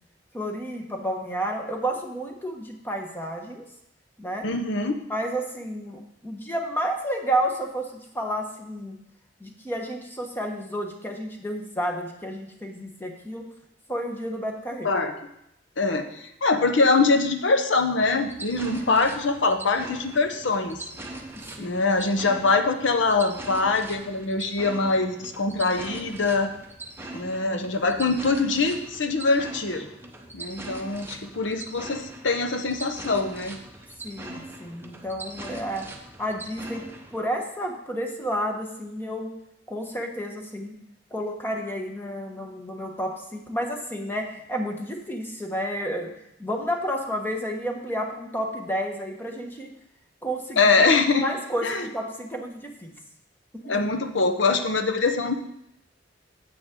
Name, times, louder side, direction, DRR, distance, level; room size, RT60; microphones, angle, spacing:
voice 1, 0.3-3.6 4.2-4.5 5.1-9.0 9.4-13.4 13.9-14.9 21.3-21.9 34.0-35.8 36.2-36.8 37.1-39.3 39.7-40.7 41.1-46.1 46.4-49.7 50.2-50.7 51.2-52.9 53.5-53.9, equal, 10° left, 2 dB, 1.2 m, -31 dB
voice 2, 4.4-5.0 14.8-15.1 15.8-20.8 21.6-26.5 27.1-29.9 30.3-33.6 50.6-51.2 51.6-51.9 53.7-55.3, left 3 dB, 75° left, 6 dB, 0.9 m, -23 dB
sound 1, 18.0-37.2, right 2 dB, 10° right, 0.9 m, -41 dB
9.3 x 7.9 x 3.8 m, 0.81 s
head